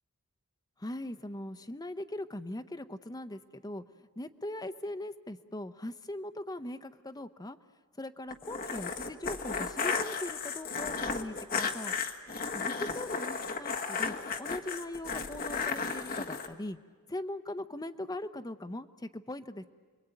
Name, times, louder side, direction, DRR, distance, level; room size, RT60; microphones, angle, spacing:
voice 1, 0.8-3.8 4.2-7.6 8.0-12.0 12.5-16.8 17.1-19.6, left 1 dB, 15° left, 8 dB, 0.8 m, -40 dB
sound 1, 8.3-16.5, left 5 dB, 40° left, 1.4 m, -34 dB
29.5 x 21.5 x 9.1 m, 1.5 s
head